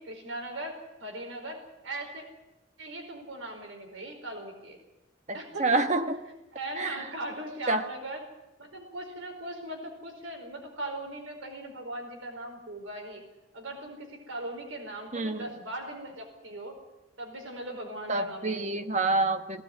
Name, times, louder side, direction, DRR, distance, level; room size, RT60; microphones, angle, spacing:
voice 1, 0.0-2.2 2.8-4.8 5.3-5.7 6.5-8.2 8.6-13.2 13.5-16.8 17.2-18.9, right 1 dB, 90° right, 3 dB, 4.7 m, -39 dB
voice 2, 5.3-6.2 6.8-7.1 7.7-7.8 15.1-15.5 18.1-19.6, right 2 dB, 35° right, 8 dB, 1.2 m, -27 dB
18.5 x 17.0 x 9.2 m, 0.97 s
head